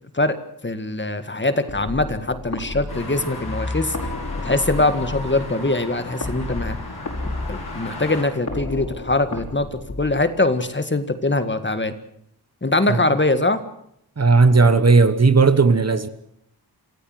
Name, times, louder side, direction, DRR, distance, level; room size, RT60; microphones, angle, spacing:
voice 1, 0.6-4.0 4.4-6.8 7.2-12.0 12.6-13.6, left 2 dB, 30° left, 1.8 m, -22 dB
sound 1, 1.7-10.6, left 2 dB, 45° left, 5.5 m, -32 dB
sound 2, 2.9-8.2, left 2 dB, 75° left, 8.0 m, -35 dB
voice 2, 14.2-16.1, right 4 dB, 40° right, 1.3 m, -15 dB
27.0 x 15.0 x 7.8 m
wide cardioid pair, 110°, 39 cm